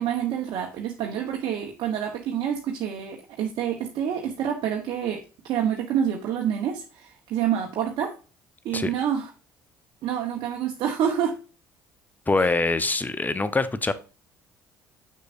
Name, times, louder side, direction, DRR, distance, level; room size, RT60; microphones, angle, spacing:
voice 1, 0.0-8.1 8.6-9.3 10.0-11.4, right 9 dB, 60° right, 1.1 m, -27 dB
voice 2, 12.3-13.9, left 3 dB, 20° left, 0.9 m, -24 dB
6.7 x 6.5 x 2.6 m
hypercardioid pair, 55°, 9 cm